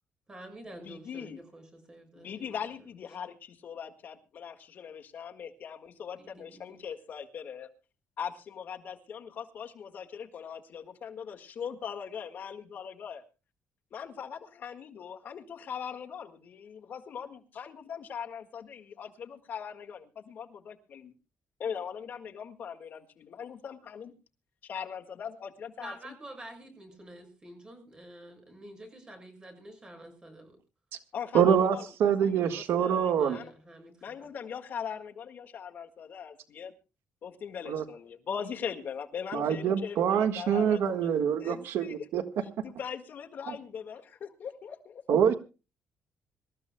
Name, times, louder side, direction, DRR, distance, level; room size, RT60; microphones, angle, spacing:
voice 1, 0.3-2.6 6.2-6.8 25.8-30.6 33.2-34.3, right 1 dB, 20° right, 5 dB, 6.6 m, -48 dB
voice 2, 0.8-1.4 2.2-7.7 8.2-13.2 13.9-21.1 21.6-24.1 24.6-26.1 31.1-33.5 34.0-36.7 37.2-41.1 41.4-42.0 42.6-45.0, left 7 dB, 50° left, 4 dB, 1.7 m, -40 dB
voice 3, 31.3-33.4 37.7-37.8 39.3-42.2 43.5-43.6 45.1-45.3, right 8 dB, 80° right, 7 dB, 1.6 m, -25 dB
26.0 x 14.0 x 2.2 m, 0.32 s
cardioid pair, 160°, 4 cm